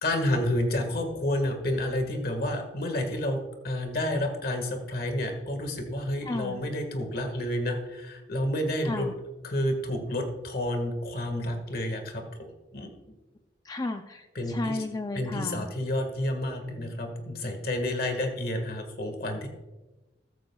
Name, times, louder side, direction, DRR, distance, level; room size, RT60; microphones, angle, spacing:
voice 1, 0.0-3.4 3.6-9.1 9.4-12.2 12.7-12.9 14.3-14.8 15.1-19.5, left 1 dB, 55° left, 5 dB, 1.7 m, -30 dB
voice 2, 6.3-6.6 8.9-9.1 13.6-15.7, left 2 dB, 20° left, 6 dB, 0.4 m, -33 dB
14.5 x 14.0 x 2.3 m, 1.1 s
head